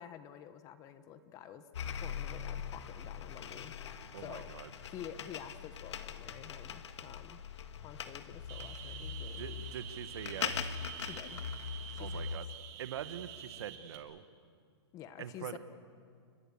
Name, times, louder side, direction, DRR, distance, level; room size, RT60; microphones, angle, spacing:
voice 1, 0.0-1.6 2.0-4.5 4.9-7.4 7.8-9.6 11.0-11.4 11.9-12.4 14.9-15.6, left 10 dB, 25° left, 11 dB, 1.0 m, -49 dB
sound 1, 1.7-12.4, left 7 dB, 80° left, 1.6 m, -41 dB
voice 2, 4.1-4.7 9.4-10.6 12.0-12.4 12.8-14.2 15.2-15.6, right 9 dB, 65° right, 11 dB, 1.5 m, -43 dB
sound 2, 8.5-14.0, right 11 dB, 35° right, 2.5 m, -48 dB
30.0 x 22.5 x 7.2 m, 2.2 s
hypercardioid pair, 160°, 14 cm